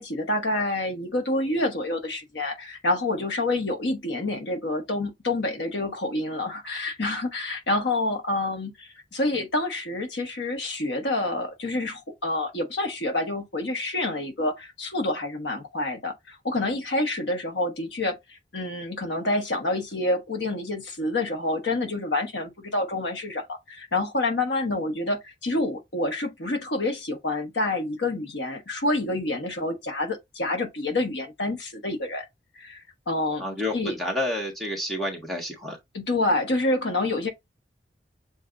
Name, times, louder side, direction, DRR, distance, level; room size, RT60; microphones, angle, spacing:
voice 1, 0.0-18.2 18.5-32.2 32.5-33.4 33.7-34.0 35.9-37.3, left 2 dB, 85° left, 1.2 m, -28 dB
voice 2, 33.4-35.8, left 1 dB, ahead, 1.5 m, -29 dB
7.5 x 2.6 x 2.5 m
head